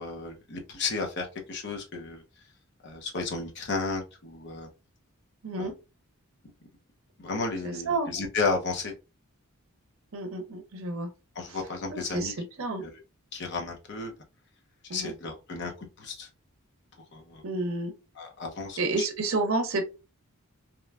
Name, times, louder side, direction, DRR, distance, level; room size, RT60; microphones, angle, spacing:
voice 1, 0.0-2.2 2.8-4.7 5.6-5.7 7.2-8.9 11.4-12.3 12.8-13.0 13.3-14.1 14.9-16.3 17.1-17.4 18.2-18.8, left 3 dB, 50° left, 0.6 m, -33 dB
voice 2, 5.4-5.7 7.6-8.1 10.1-11.1 11.5-11.6 11.9-12.8 14.9-15.1 17.4-17.9 18.8-19.8, right 3 dB, 65° right, 0.6 m, -30 dB
2.9 x 2.1 x 2.2 m
head